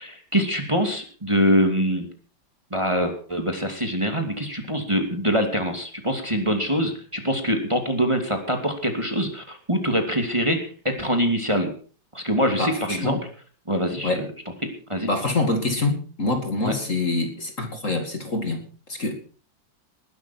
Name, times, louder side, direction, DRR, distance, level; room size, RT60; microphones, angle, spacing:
voice 1, 0.0-2.0 2.7-11.7 12.1-13.2 13.7-14.3 14.6-15.1 16.6-16.7, equal, 15° right, 4 dB, 2.7 m, -24 dB
voice 2, 12.6-13.2 14.0-14.3 15.1-18.6 18.9-19.1, left 2 dB, 40° left, 5 dB, 2.7 m, -25 dB
20.0 x 12.0 x 4.5 m, 0.40 s
omnidirectional pair, 2.1 m